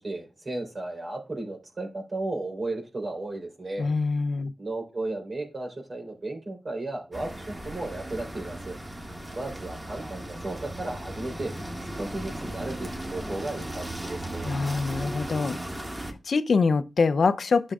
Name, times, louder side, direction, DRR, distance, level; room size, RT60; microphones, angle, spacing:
voice 1, 0.0-3.9 4.6-8.8 9.3-11.5 12.0-14.6, right 2 dB, 50° right, 3.6 m, -34 dB
voice 2, 3.8-4.5 14.5-15.6 16.0-17.7, left 4 dB, 70° left, 0.5 m, -24 dB
sound 1, 7.1-16.1, right 1 dB, 15° right, 1.7 m, -36 dB
11.0 x 6.4 x 2.4 m
cardioid pair, 60°, 0 cm